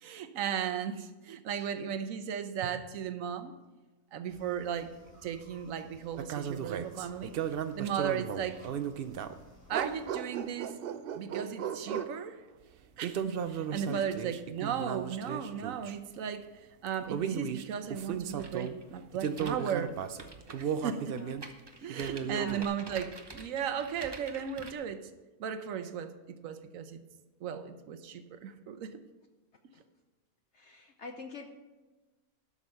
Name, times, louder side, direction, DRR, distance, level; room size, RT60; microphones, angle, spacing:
voice 1, 0.0-3.6 4.1-4.9 5.2-7.3 7.7-8.7 9.7-10.8 11.1-12.4 13.0-16.5 16.8-19.9 20.6-21.2 21.8-25.0 25.4-27.0 27.4-29.0, right 8 dB, 65° right, 10 dB, 1.1 m, -36 dB
voice 2, 1.6-2.0 13.9-14.1 21.0-21.3 21.7-22.6 29.7-29.8 30.5-31.5, left 5 dB, 60° left, 4 dB, 0.8 m, -46 dB
sound 1, 4.3-10.1, left 1 dB, 75° left, 3.6 m, -58 dB
sound 2, 6.2-9.4 9.7-12.2 13.0-16.0 16.9-18.8 19.1-21.5 21.9-22.6, right 8 dB, 85° right, 0.5 m, -35 dB
sound 3, 18.4-24.7, right 3 dB, 30° right, 0.4 m, -48 dB
12.0 x 6.2 x 5.4 m, 1.2 s
omnidirectional pair, 1.6 m